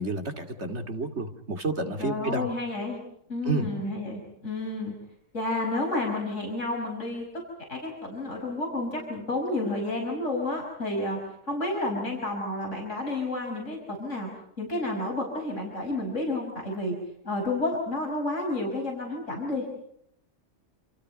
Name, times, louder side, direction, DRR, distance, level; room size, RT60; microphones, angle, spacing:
voice 1, 0.0-2.5 3.4-3.7, right 3 dB, 65° right, 6 dB, 2.9 m, -30 dB
voice 2, 2.0-3.0 3.3-4.9 5.3-7.4 7.7-11.2 11.5-14.3 14.6-17.0 17.2-19.6, left 2 dB, 85° left, 0 dB, 5.8 m, -30 dB
28.5 x 28.5 x 5.4 m, 0.72 s
omnidirectional pair, 1.2 m